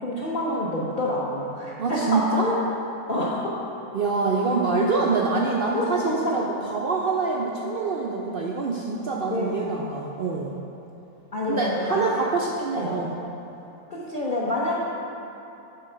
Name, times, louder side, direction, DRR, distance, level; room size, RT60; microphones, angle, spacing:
voice 1, 0.0-2.6 3.1-3.5 5.7-6.3 9.3-9.9 11.3-12.2 12.8-13.1 13.9-14.8, left 1 dB, 45° left, -6 dB, 0.8 m, -27 dB
voice 2, 1.8-2.5 3.9-10.5 11.5-13.1, right 3 dB, 80° right, -2 dB, 0.5 m, -25 dB
8.3 x 3.8 x 5.6 m, 3.0 s
omnidirectional pair, 1.5 m